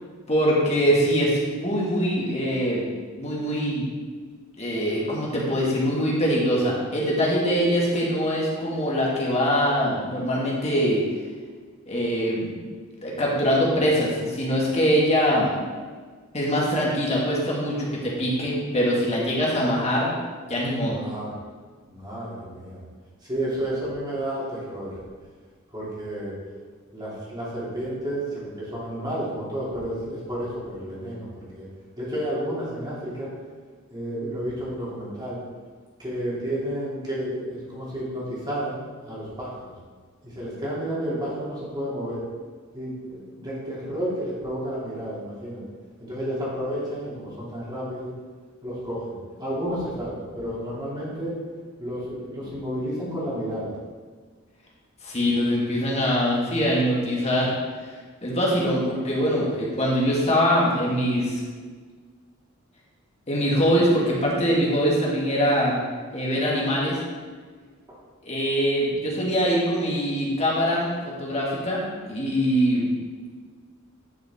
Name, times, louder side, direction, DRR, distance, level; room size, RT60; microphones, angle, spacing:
voice 1, 0.3-2.8 3.2-3.9 4.6-11.0 11.9-12.6 13.0-15.5 16.3-20.1 20.5-21.0 55.0-57.5 58.2-61.4 63.3-65.7 66.1-67.0 68.2-72.9, equal, 30° left, -4 dB, 2.0 m, -23 dB
voice 2, 20.9-21.3 21.9-22.8 23.3-25.0 25.7-26.4 26.9-31.7 32.0-33.3 33.9-35.4 36.0-39.5 40.2-42.2 42.7-45.6 46.0-48.1 48.6-51.4 51.8-53.7, equal, 20° right, -7 dB, 2.7 m, -31 dB
10.0 x 5.7 x 3.6 m, 1.5 s
head